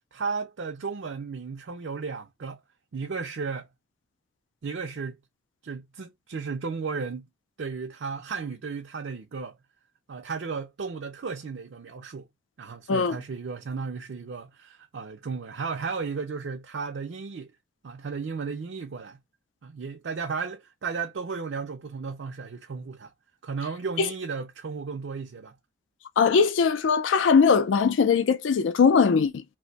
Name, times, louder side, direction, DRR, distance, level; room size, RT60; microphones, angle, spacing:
voice 1, 0.1-2.6 2.9-3.7 4.6-5.2 5.6-7.3 7.6-9.6 10.1-12.3 12.6-17.5 17.8-19.2 19.6-23.1 23.4-25.5, right 5 dB, 75° right, 0.5 m, -34 dB
voice 2, 26.2-29.4, left 5 dB, 90° left, 0.4 m, -20 dB
2.5 x 2.1 x 3.9 m
head